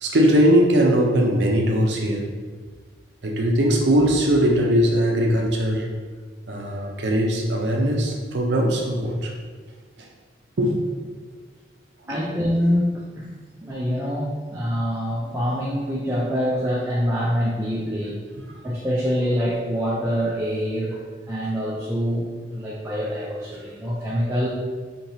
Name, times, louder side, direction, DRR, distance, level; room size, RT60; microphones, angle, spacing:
voice 1, 0.0-2.3 3.2-5.9 6.5-9.3 10.0-10.1 10.6-10.7 12.1-12.2, equal, 75° right, 0 dB, 0.6 m, -20 dB
voice 2, 12.1-13.3 13.6-18.2 18.6-21.0 21.3-24.5, equal, 15° right, -6 dB, 0.4 m, -25 dB
4.6 x 2.8 x 2.7 m, 1.5 s
head